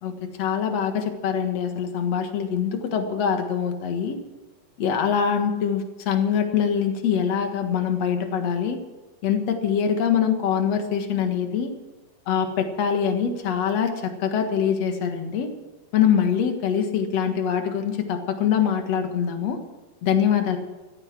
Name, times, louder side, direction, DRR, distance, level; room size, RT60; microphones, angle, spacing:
voice 1, 0.0-4.2 4.8-8.8 9.2-11.7 12.3-15.5 15.9-19.6 20.0-20.6, left 7 dB, 55° left, 6 dB, 2.3 m, -24 dB
16.0 x 13.5 x 6.1 m, 1.2 s
omnidirectional pair, 4.5 m